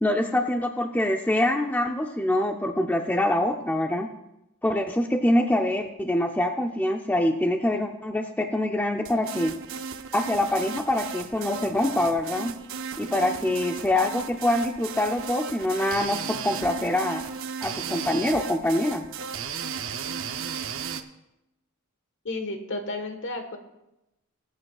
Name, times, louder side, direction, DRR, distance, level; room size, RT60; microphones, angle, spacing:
voice 1, 0.0-4.1 4.6-9.5 10.1-12.5 13.0-17.2 17.6-19.0, left 1 dB, 10° left, 4 dB, 0.5 m, -25 dB
sound 1, 9.1-21.0, right 6 dB, 60° right, 0.6 m, -35 dB
voice 2, 22.2-23.6, left 2 dB, 60° left, 6 dB, 1.3 m, -32 dB
20.5 x 8.5 x 2.4 m, 0.91 s
head